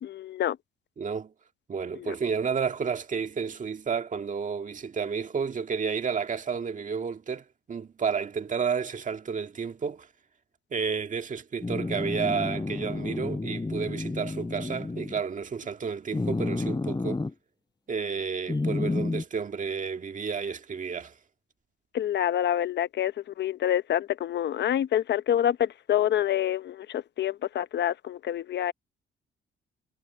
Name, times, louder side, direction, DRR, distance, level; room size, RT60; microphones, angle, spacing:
voice 1, 0.0-0.6 2.0-2.1 21.9-23.1 23.4-28.7, left 11 dB, 60° left, 0.8 m, -27 dB
voice 2, 1.0-1.3 1.7-10.1 10.7-17.2 17.9-21.1, right 6 dB, 40° right, 1.9 m, -31 dB
sound 1, 11.6-15.2 16.1-17.3 18.5-19.2, left 3 dB, 20° left, 5.1 m, -30 dB
cardioid pair, 90°, 20 cm